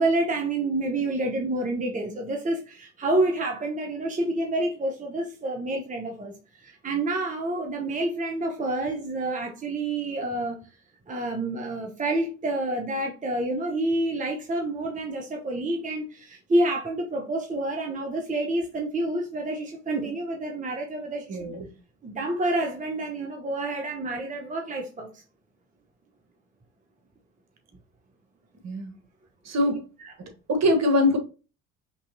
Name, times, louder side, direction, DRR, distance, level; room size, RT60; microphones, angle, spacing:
voice 1, 0.0-10.6 11.1-21.6 22.0-25.2 30.0-30.1, right 2 dB, 20° right, 0.9 m, -28 dB
voice 2, 21.3-21.7 28.6-28.9 29.4-29.8 30.5-31.2, left 1 dB, 40° right, 1.3 m, -23 dB
5.4 x 2.9 x 2.7 m
hypercardioid pair, 60°, 41 cm